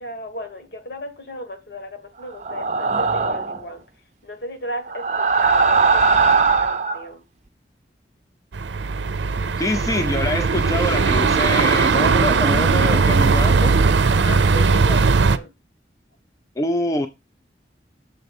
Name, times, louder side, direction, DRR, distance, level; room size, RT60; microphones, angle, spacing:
voice 1, 0.0-3.8 4.2-7.2 14.3-15.5, equal, 65° left, 1.7 m, -35 dB
sound 1, 2.4-3.6 4.9-7.0, right 4 dB, 40° right, 0.6 m, -19 dB
sound 2, 8.5-15.4, right 4 dB, 90° right, 0.5 m, -18 dB
voice 2, 9.6-13.7 16.6-17.1, left 1 dB, 20° left, 0.5 m, -25 dB
6.9 x 4.1 x 5.3 m
head